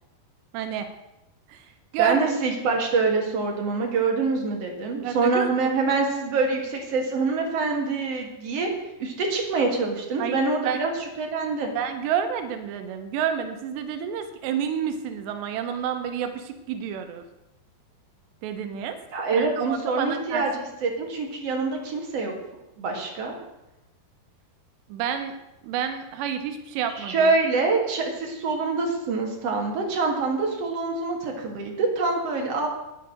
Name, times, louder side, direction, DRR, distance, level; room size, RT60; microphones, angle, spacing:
voice 1, 0.5-0.9 1.5-1.7 1.9-2.2 5.0-5.7 10.2-10.4 10.7-10.8 11.8-17.2 18.4-19.0 19.3-20.4 24.9-25.4 25.6-27.3, right 8 dB, 90° right, 7 dB, 3.0 m, -29 dB
voice 2, 2.0-8.7 9.0-10.9 11.2-11.7 19.1-22.3 22.8-23.3 27.0-32.7, right 4 dB, 50° right, 1 dB, 2.3 m, -25 dB
9.5 x 9.0 x 6.5 m, 0.93 s
omnidirectional pair, 4.9 m